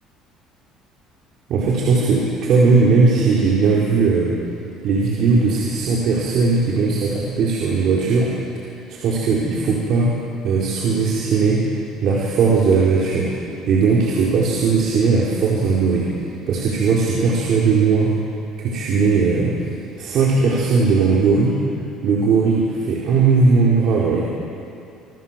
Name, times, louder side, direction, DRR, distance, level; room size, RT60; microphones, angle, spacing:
voice 1, 1.5-4.4 4.8-8.3 8.9-10.1 10.4-11.6 12.0-13.3 13.7-16.1 16.5-18.1 18.6-19.5 20.0-21.6 22.0-24.2, right 4 dB, 60° right, -4 dB, 4.7 m, -18 dB
26.5 x 25.5 x 7.7 m, 2.6 s
cardioid pair, 115°, 0 cm